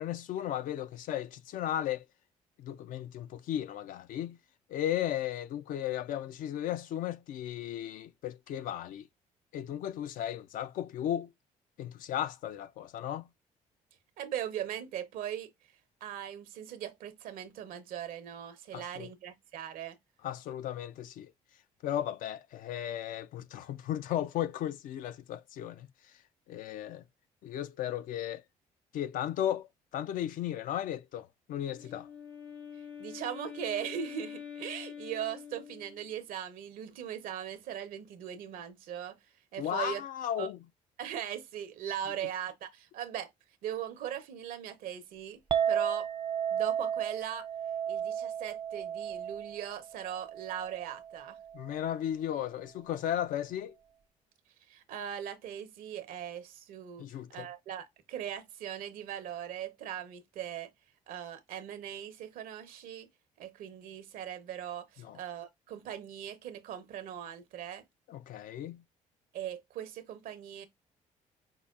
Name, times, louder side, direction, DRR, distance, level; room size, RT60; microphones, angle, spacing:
voice 1, 0.0-2.0 2.6-4.4 4.7-9.0 9.5-11.3 11.8-13.3 18.7-19.1 20.2-21.3 21.8-25.9 26.5-27.0 27.4-28.4 28.9-29.7 29.9-32.1 39.6-40.6 51.5-53.7 57.0-57.5 65.0-65.2 68.1-68.8, left 11 dB, 70° left, 0.4 m, -35 dB
voice 2, 14.2-15.5 16.0-20.0 33.0-39.2 39.5-40.0 40.3-40.5 41.0-43.3 43.6-45.4 45.7-46.1 46.5-47.4 47.9-51.4 54.7-57.0 57.3-60.7 61.1-63.1 63.4-67.8 69.3-70.7, right 10 dB, 80° right, 0.8 m, -39 dB
Wind instrument woodwind instrument, 31.6-36.2, left 8 dB, 90° left, 1.0 m, -45 dB
Chink clink, 45.5-51.8, right 8 dB, 35° right, 0.4 m, -34 dB
5.4 x 2.2 x 2.4 m
supercardioid pair, 80°, 14 cm